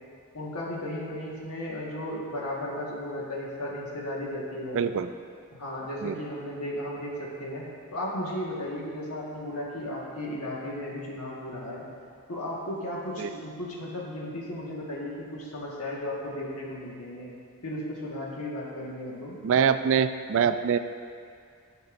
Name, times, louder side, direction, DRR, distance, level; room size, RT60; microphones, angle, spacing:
voice 1, 0.3-4.8 5.6-7.6 7.9-11.9 12.3-17.3 17.6-19.4, left 1 dB, 85° left, -4 dB, 1.6 m, -35 dB
voice 2, 4.7-5.1 6.0-6.1 13.2-13.3 19.4-20.8, right 7 dB, 60° right, 11 dB, 0.3 m, -24 dB
13.5 x 5.3 x 2.6 m, 2.2 s
head